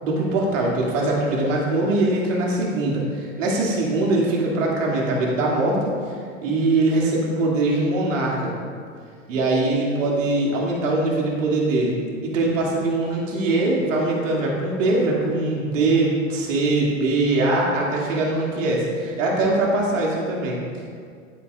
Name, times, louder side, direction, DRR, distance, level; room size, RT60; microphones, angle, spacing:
voice 1, 0.0-5.8 6.4-8.5 9.3-12.0 12.2-20.6, right 2 dB, 70° right, -3 dB, 2.4 m, -22 dB
11.0 x 9.4 x 2.4 m, 2.1 s
hypercardioid pair, 110°, 40 cm